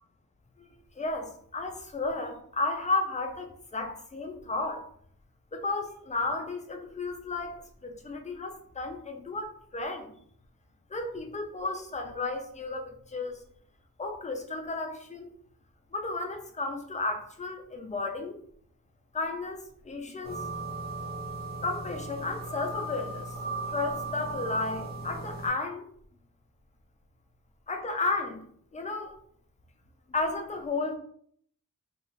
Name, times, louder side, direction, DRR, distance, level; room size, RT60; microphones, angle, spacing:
voice 1, 0.6-4.9 5.5-10.1 10.9-13.4 14.0-15.3 15.9-18.4 19.1-20.4 21.6-23.3 23.7-25.9 27.7-28.5 28.7-29.1 30.1-31.0, left 3 dB, 20° left, 4 dB, 0.4 m, -33 dB
sound 1, 20.2-25.5, right 3 dB, 25° right, 1.2 m, -37 dB
2.4 x 2.4 x 3.1 m, 0.63 s
wide cardioid pair, 110°, 35 cm